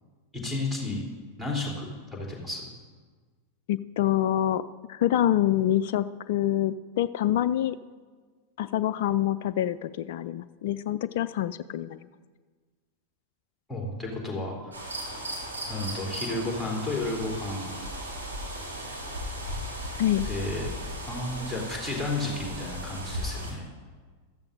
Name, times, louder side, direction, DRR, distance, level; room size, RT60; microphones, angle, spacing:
voice 1, 0.3-1.0 1.4-2.7 13.7-14.8 15.7-17.7 20.3-20.7 21.0-23.6, left 2 dB, ahead, -3 dB, 3.5 m, -32 dB
voice 2, 3.7-4.6 4.9-7.8 8.6-12.0 20.0-20.3, left 12 dB, 55° left, 14 dB, 0.3 m, -26 dB
sound 1, 14.7-23.5, equal, 80° right, 2.9 m, -36 dB
14.5 x 13.5 x 2.7 m, 1.5 s
figure-of-eight pair, 90°, 0 cm